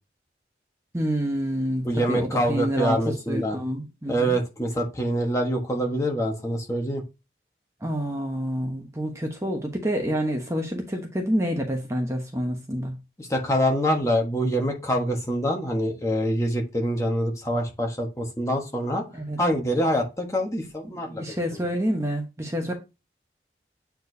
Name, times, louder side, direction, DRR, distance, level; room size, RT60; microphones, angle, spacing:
voice 1, 0.9-4.4 7.8-13.0 19.1-19.4 21.1-22.7, equal, 15° right, 1.1 m, -28 dB
voice 2, 1.8-3.6 4.1-7.0 13.2-19.0 19.4-21.4, equal, 15° left, 1.3 m, -25 dB
8.6 x 4.6 x 2.7 m
head